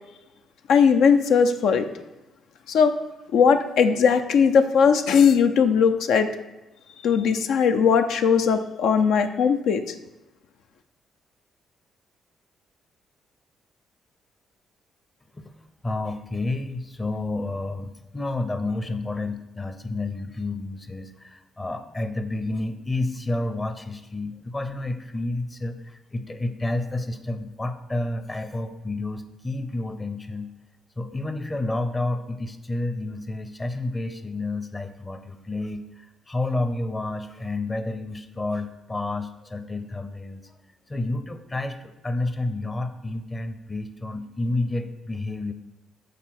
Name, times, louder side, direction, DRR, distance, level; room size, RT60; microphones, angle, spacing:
voice 1, 0.7-1.9 2.7-2.9 3.3-6.3 7.0-9.9, left 6 dB, 80° left, 7 dB, 0.5 m, -19 dB
voice 2, 15.8-30.5 31.0-40.5 40.9-45.5, left 2 dB, 20° left, 10 dB, 0.7 m, -30 dB
6.7 x 4.4 x 5.8 m, 1.0 s
cardioid pair, 90°, 0 cm